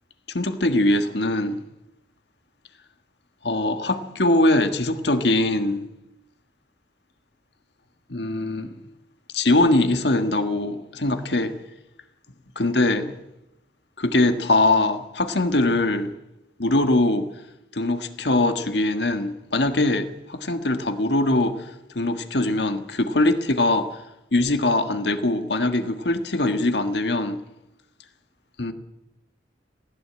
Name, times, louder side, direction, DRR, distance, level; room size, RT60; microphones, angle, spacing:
voice 1, 0.3-1.6 3.4-5.9 8.1-8.7 9.3-11.6 12.6-13.1 14.0-16.2 16.6-17.3 17.7-21.7 21.9-24.0 24.3-27.4 28.6-28.7, left 2 dB, 65° left, 1.6 m, -22 dB
19.5 x 16.0 x 8.8 m
head